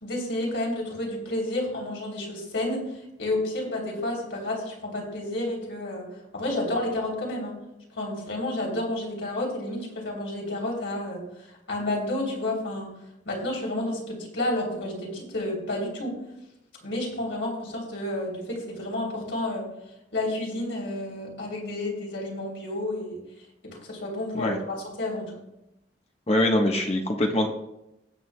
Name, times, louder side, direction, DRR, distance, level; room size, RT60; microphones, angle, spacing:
voice 1, 0.0-6.1 6.3-7.6 7.9-12.9 13.2-16.2 16.8-19.7 20.1-23.2 23.6-25.3, left 1 dB, 85° left, -2 dB, 3.2 m, -30 dB
voice 2, 26.3-27.5, left 1 dB, 35° left, 2 dB, 1.0 m, -23 dB
19.0 x 7.7 x 2.2 m, 0.87 s
head